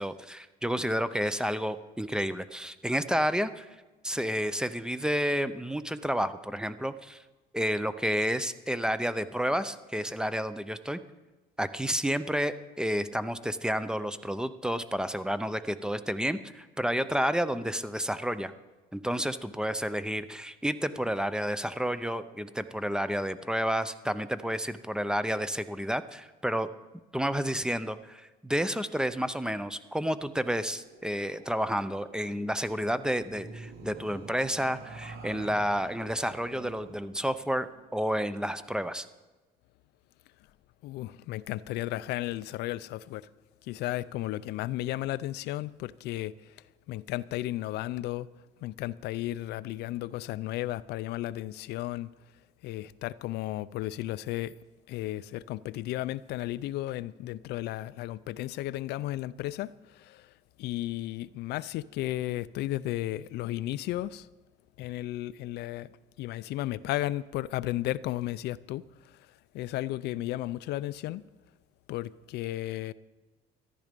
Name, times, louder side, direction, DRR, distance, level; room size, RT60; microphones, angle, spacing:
voice 1, 0.0-3.7 4.0-7.2 7.5-11.0 11.6-18.5 18.9-26.7 27.1-39.1, equal, 5° right, 0.6 m, -30 dB
sound 1, 30.1-39.0, right 3 dB, 70° right, 2.3 m, -49 dB
voice 2, 40.8-43.3 43.6-46.5 46.9-48.3 48.6-52.1 52.6-54.5 54.9-60.3 60.6-64.3 64.8-65.9 66.2-68.8 69.5-71.2 71.9-72.9, left 15 dB, 80° left, 0.5 m, -34 dB
14.0 x 11.0 x 5.2 m
cardioid pair, 110°, 17 cm